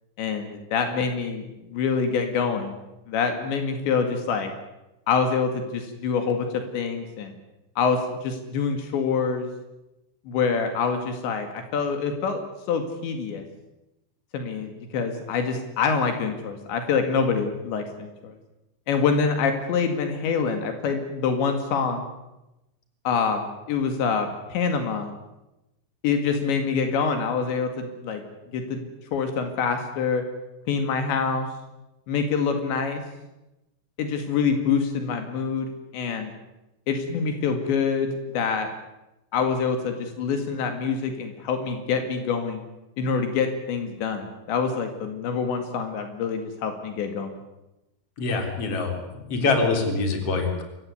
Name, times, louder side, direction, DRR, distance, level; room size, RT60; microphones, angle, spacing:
voice 1, 0.2-1.4 1.7-2.8 3.1-4.5 5.1-7.4 7.8-9.5 10.3-12.4 12.7-13.4 14.3-18.3 18.9-22.1 23.1-25.1 26.0-28.2 28.5-30.2 30.7-31.5 32.1-33.0 34.0-35.7 35.9-36.3 36.9-38.7 39.3-42.6 43.0-47.4, left 5 dB, 75° left, 6 dB, 4.3 m, -26 dB
voice 2, 48.2-50.6, left 3 dB, 35° left, 4 dB, 4.2 m, -25 dB
27.5 x 15.0 x 9.6 m, 0.95 s
omnidirectional pair, 5.3 m